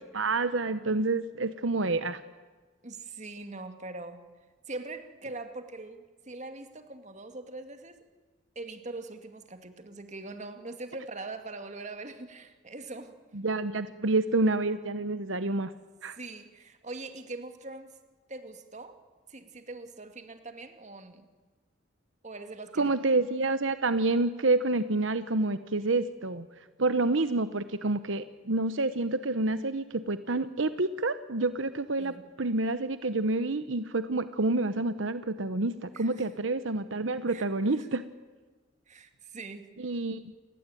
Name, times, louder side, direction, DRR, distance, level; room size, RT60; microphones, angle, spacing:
voice 1, 0.0-2.2 13.3-15.7 16.0-16.2 22.8-26.5 26.8-38.0 39.8-40.2, right 2 dB, 80° right, 12 dB, 1.0 m, -28 dB
voice 2, 2.8-4.2 4.7-8.0 8.6-13.2 16.1-17.9 18.3-19.0 19.3-21.2 22.2-23.0 32.0-32.2 35.9-36.3 37.3-38.0 38.9-39.7, right 2 dB, 40° right, 7 dB, 2.3 m, -42 dB
28.5 x 20.0 x 9.2 m, 1.3 s
head